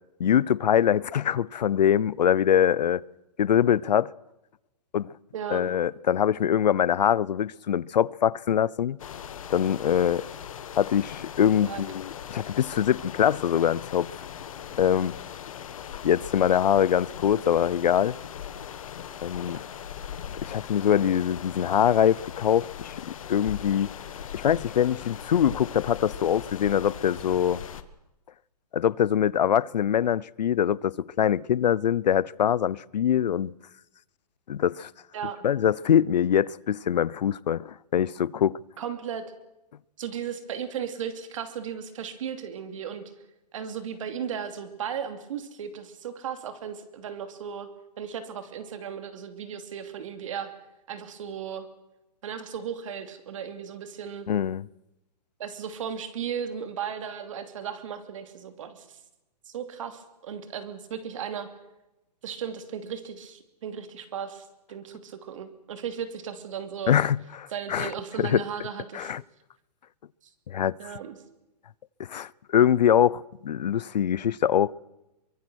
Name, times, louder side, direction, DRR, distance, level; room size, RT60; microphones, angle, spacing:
voice 1, 0.2-3.0 3.4-4.1 4.9-5.1 5.5-9.0 9.5-10.2 10.7-14.1 14.8-15.1 16.0-18.1 19.2-19.6 20.4-22.9 23.3-23.9 24.3-27.6 28.7-33.5 34.5-34.9 35.4-38.6 54.3-54.6 66.9-67.9 68.2-68.4 68.9-69.2 70.5-70.8 72.0-74.7, left 9 dB, 85° left, 0.7 m, -23 dB
voice 2, 5.3-5.7 11.6-11.8 35.1-35.5 38.8-39.3 40.0-43.0 43.5-47.7 48.0-50.5 50.9-51.7 52.2-54.3 55.4-59.0 59.5-61.5 62.2-67.0 67.5-69.1 70.8-71.2, right 8 dB, 50° right, 2.9 m, -36 dB
sound 1, 9.0-27.8, left 9 dB, 55° left, 1.5 m, -40 dB
24.0 x 22.5 x 6.3 m
hypercardioid pair, 170°, 21 cm